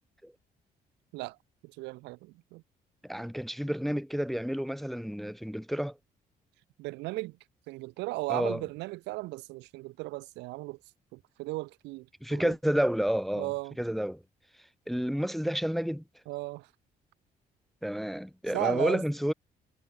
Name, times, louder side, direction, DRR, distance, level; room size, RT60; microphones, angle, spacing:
voice 1, 1.6-2.6 6.8-7.4 7.7-10.8 11.1-12.5 13.4-13.7 16.3-16.7 18.5-19.0, right 21 dB, 85° right, 0.4 m, -36 dB
voice 2, 3.0-6.0 8.3-8.6 12.2-13.5 13.8-14.2 14.9-16.0 17.8-19.3, equal, ahead, 0.5 m, -30 dB
supercardioid pair, 70°, 17 cm